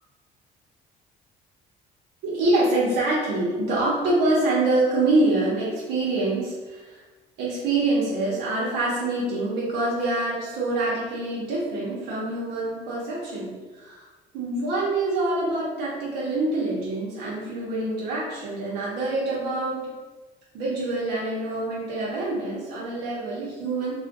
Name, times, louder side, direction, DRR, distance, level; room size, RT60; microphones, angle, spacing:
voice 1, 2.2-7.0 7.4-14.1 14.3-19.9 20.5-23.9, right 2 dB, 90° right, -6 dB, 0.7 m, -25 dB
2.3 x 2.1 x 2.5 m, 1.2 s
cardioid pair, 110°, 17 cm